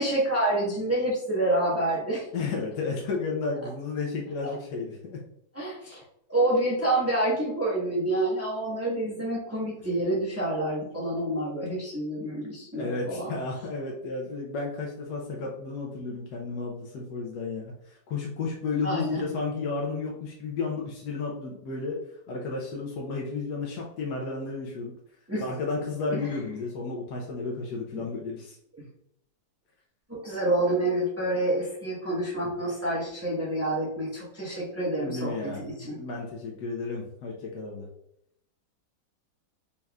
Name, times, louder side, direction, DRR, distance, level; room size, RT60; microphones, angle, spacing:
voice 1, 0.0-2.3 5.5-6.0 6.3-13.3 18.8-19.2 25.3-25.4 26.1-26.4 27.9-28.0 30.1-36.0, right 1 dB, 10° right, -5 dB, 0.8 m, -28 dB
voice 2, 2.3-5.2 12.7-22.0 22.3-24.9 25.4-28.6 35.0-37.9, left 4 dB, 75° left, -2 dB, 1.3 m, -33 dB
4.1 x 3.5 x 2.3 m, 0.74 s
omnidirectional pair, 1.9 m